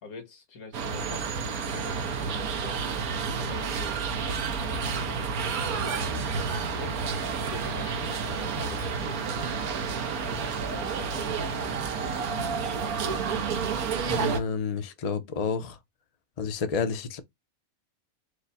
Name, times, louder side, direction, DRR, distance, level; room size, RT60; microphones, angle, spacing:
voice 1, 0.0-2.8 3.4-6.1 6.5-7.0 7.4-9.2 10.2-12.2, left 4 dB, 80° left, 1.7 m, -45 dB
sound 1, 0.7-14.4, right 5 dB, 90° right, 1.3 m, -30 dB
voice 2, 14.0-15.8 16.4-17.2, left 5 dB, 45° left, 0.5 m, -30 dB
4.8 x 2.1 x 4.0 m
omnidirectional pair, 1.5 m